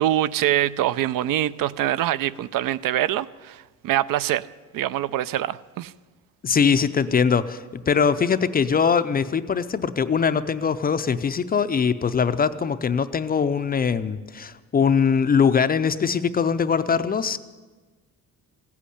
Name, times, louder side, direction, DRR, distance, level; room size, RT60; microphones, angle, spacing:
voice 1, 0.0-4.5 4.7-5.9, right 13 dB, 65° right, 0.5 m, -24 dB
voice 2, 6.4-17.4, left 6 dB, 25° left, 0.4 m, -22 dB
15.5 x 8.5 x 10.0 m
cardioid pair, 155°, 35 cm